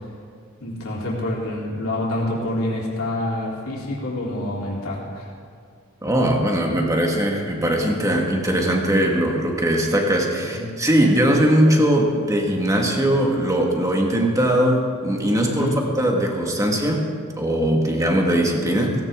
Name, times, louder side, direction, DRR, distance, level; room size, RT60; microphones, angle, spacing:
voice 1, 0.6-5.3 10.5-10.7 15.4-15.8 18.8-18.9, left 1 dB, 90° left, -4 dB, 3.5 m, -27 dB
voice 2, 6.0-15.7 16.0-17.1 17.4-18.9, right 1 dB, 15° right, 0 dB, 1.8 m, -20 dB
17.0 x 17.0 x 3.7 m, 2.2 s
head